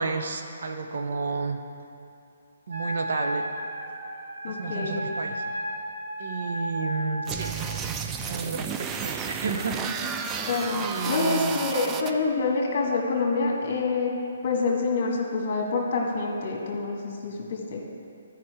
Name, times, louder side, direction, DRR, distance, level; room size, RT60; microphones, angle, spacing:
voice 1, 0.0-1.6 2.7-3.4 4.5-5.5 6.2-10.0 10.8-11.6, right 4 dB, 65° right, 5 dB, 0.8 m, -31 dB
Wind instrument woodwind instrument, 2.7-7.6, equal, 80° right, 1.2 m, -34 dB
voice 2, 4.4-5.0 10.4-14.1 14.4-17.8, left 3 dB, 45° left, -1 dB, 1.7 m, -27 dB
sound 1, 7.3-12.1, right 6 dB, 15° right, 0.3 m, -32 dB
12.0 x 5.2 x 4.9 m, 2.6 s
hypercardioid pair, 165°, 0 cm